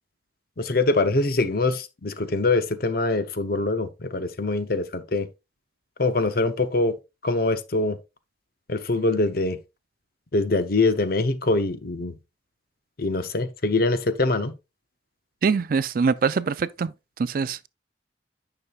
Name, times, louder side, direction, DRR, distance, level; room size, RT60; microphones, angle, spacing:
voice 1, 0.6-5.3 6.0-7.0 7.2-8.0 8.7-9.6 10.3-12.2 13.0-14.5, left 2 dB, 50° left, 0.7 m, -23 dB
voice 2, 15.4-16.9 17.2-17.7, right 5 dB, 50° right, 0.3 m, -23 dB
9.7 x 5.9 x 2.4 m
head